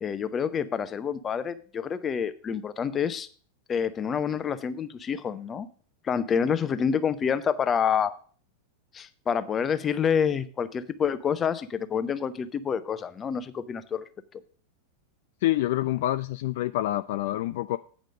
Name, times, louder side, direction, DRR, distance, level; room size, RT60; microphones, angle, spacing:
voice 1, 0.0-3.3 3.7-5.7 6.0-8.1 8.9-14.0, left 7 dB, 25° left, 0.7 m, -28 dB
voice 2, 15.4-17.8, left 15 dB, 50° left, 0.3 m, -27 dB
9.2 x 5.1 x 6.2 m
figure-of-eight pair, 90°, 0 cm